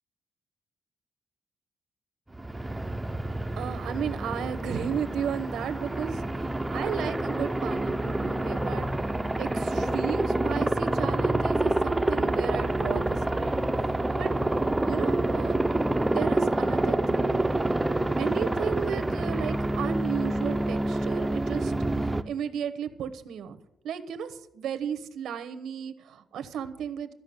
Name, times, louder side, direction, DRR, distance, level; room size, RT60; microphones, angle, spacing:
Aircraft, 2.3-22.2, right 1 dB, 10° right, 0.5 m, -27 dB
voice 1, 3.6-8.9 9.4-14.3 14.8-15.6 16.1-17.4 18.2-21.7 22.0-23.6 23.8-27.1, right 8 dB, 85° right, 11 dB, 1.1 m, -34 dB
14.0 x 5.7 x 9.5 m, 0.86 s
wide cardioid pair, 160°, 0 cm